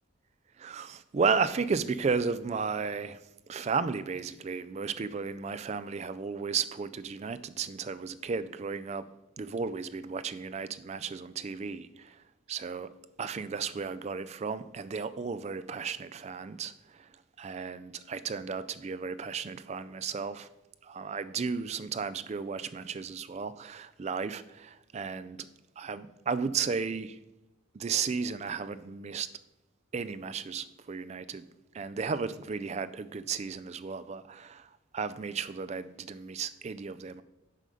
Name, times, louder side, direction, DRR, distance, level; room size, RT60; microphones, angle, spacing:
voice 1, 0.6-3.2 3.5-9.1 9.4-12.2 12.5-12.9 13.2-17.1 17.4-20.5 20.8-25.4 25.8-27.2 27.7-29.3 29.9-31.4 31.7-37.2, right 5 dB, 30° right, 0.3 m, -34 dB
7.7 x 4.9 x 5.4 m
head